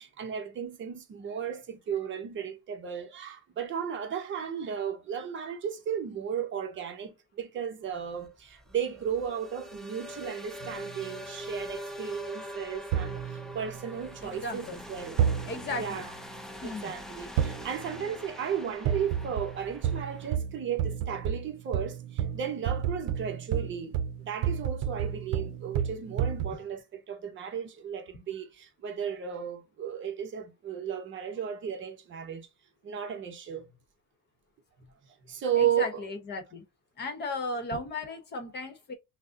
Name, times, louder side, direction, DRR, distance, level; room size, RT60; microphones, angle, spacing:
voice 1, 0.0-15.2 15.8-16.1 16.6-23.9 24.2-32.5 32.8-33.6 35.3-36.1, right 8 dB, 40° right, 0.8 m, -34 dB
sound 1, 7.9-20.4, equal, ahead, 0.4 m, -43 dB
sound 2, 10.6-11.2 12.9-14.3 15.2-16.1 17.4-18.2 18.8-26.5, right 9 dB, 85° right, 0.6 m, -31 dB
voice 2, 14.2-14.8 15.5-16.1 16.6-17.0 35.6-36.6 37.0-38.9, left 2 dB, 35° left, 0.9 m, -36 dB
6.1 x 2.1 x 2.6 m
cardioid pair, 180°, 31 cm